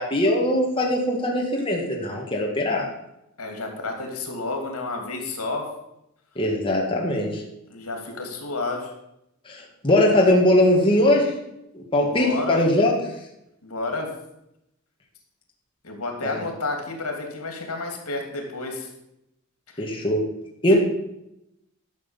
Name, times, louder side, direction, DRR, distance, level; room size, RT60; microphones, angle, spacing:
voice 1, 0.0-2.9 6.4-7.4 9.5-11.3 11.7-12.9 16.2-16.4 19.8-20.2 20.6-20.7, left 1 dB, 25° left, -1 dB, 1.9 m, -21 dB
voice 2, 3.4-5.7 7.7-8.9 12.0-12.6 13.6-14.1 15.8-18.9 19.7-19.8 20.7-20.8, left 3 dB, 85° left, 3 dB, 2.9 m, -31 dB
11.5 x 6.3 x 7.3 m, 0.83 s
head